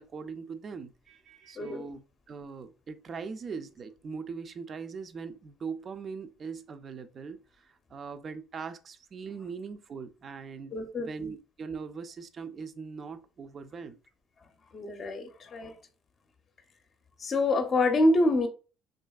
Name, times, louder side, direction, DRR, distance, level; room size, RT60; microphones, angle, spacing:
voice 1, 0.0-14.0, right 5 dB, 45° right, 0.4 m, -41 dB
voice 2, 10.7-11.1 14.7-15.7 17.2-18.5, left 2 dB, 40° left, 0.6 m, -26 dB
2.7 x 2.4 x 2.3 m
supercardioid pair, 75°, 0 cm